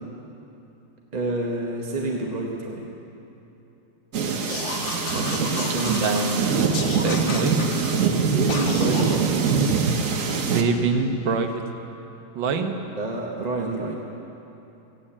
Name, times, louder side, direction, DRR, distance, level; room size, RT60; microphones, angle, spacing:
voice 1, 1.1-2.8 5.1-6.0 8.2-9.5 12.9-13.9, right 2 dB, 30° right, -1 dB, 0.9 m, -28 dB
sound 1, 4.1-10.6, right 5 dB, 50° right, 1.2 m, -24 dB
Gremlin laugh, 4.5-6.4 6.7-7.9 8.5-9.3, left 3 dB, 80° left, 2.1 m, -32 dB
voice 2, 5.8-6.6 6.9-7.6 10.5-11.7 12.4-12.8, right 4 dB, 85° right, 6 dB, 1.7 m, -24 dB
15.0 x 9.0 x 8.6 m, 3.0 s
omnidirectional pair, 2.0 m